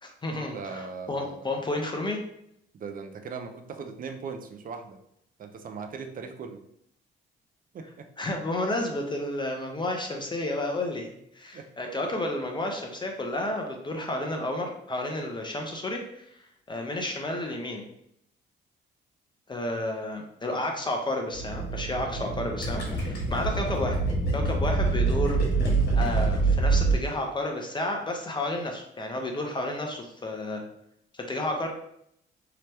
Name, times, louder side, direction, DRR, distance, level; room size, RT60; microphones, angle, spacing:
voice 1, 0.0-2.2 8.2-11.1 11.3-16.4 16.7-17.8 19.5-24.0 24.3-25.4 25.9-30.6 31.1-31.7, left 1 dB, 25° left, 2 dB, 0.5 m, -31 dB
voice 2, 0.5-1.5 2.7-5.0 5.4-6.6 7.7-8.1 11.5-12.0, right 5 dB, 45° right, 7 dB, 0.4 m, -39 dB
sound 1, 21.4-26.9, right 4 dB, 85° left, 1.0 m, -26 dB
Gurgling, 22.6-27.3, left 1 dB, 55° left, 1.2 m, -34 dB
2.8 x 2.1 x 3.2 m, 0.74 s
cardioid pair, 90°, 20 cm